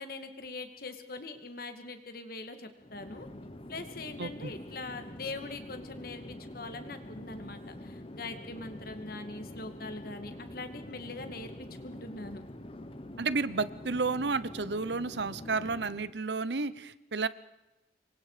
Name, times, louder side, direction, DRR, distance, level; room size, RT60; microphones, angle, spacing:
voice 1, 0.0-3.3 3.7-12.4, left 3 dB, 55° left, 7 dB, 2.4 m, -42 dB
Chatter / Fixed-wing aircraft airplane, 2.8-16.2, left 1 dB, 30° left, 1.2 m, -46 dB
voice 2, 4.2-4.5 13.2-17.3, right 4 dB, 75° right, 17 dB, 0.9 m, -31 dB
27.5 x 23.5 x 5.1 m, 0.96 s
head